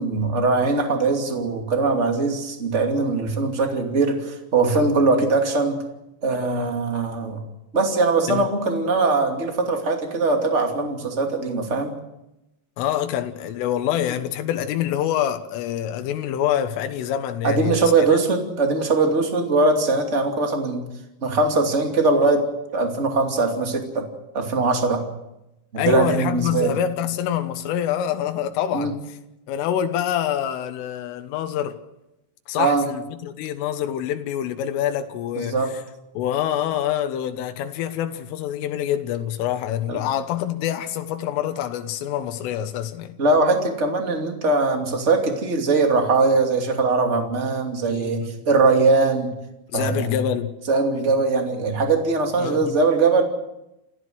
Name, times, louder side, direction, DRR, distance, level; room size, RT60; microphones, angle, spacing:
voice 1, 0.0-5.8 6.2-7.4 7.7-12.0 17.4-20.8 21.2-22.5 22.7-24.0 24.3-25.0 25.7-26.8 28.7-29.0 32.6-32.9 35.4-35.7 39.9-40.0 43.2-49.3 49.7-50.3 50.7-53.2, right 3 dB, 25° right, 1.7 m, -21 dB
voice 2, 12.8-17.9 25.8-29.0 29.5-31.8 32.5-35.6 36.2-43.2 47.9-48.3 49.7-50.5 52.4-52.8, left 10 dB, 90° left, 3.9 m, -26 dB
28.0 x 15.0 x 7.9 m
omnidirectional pair, 5.6 m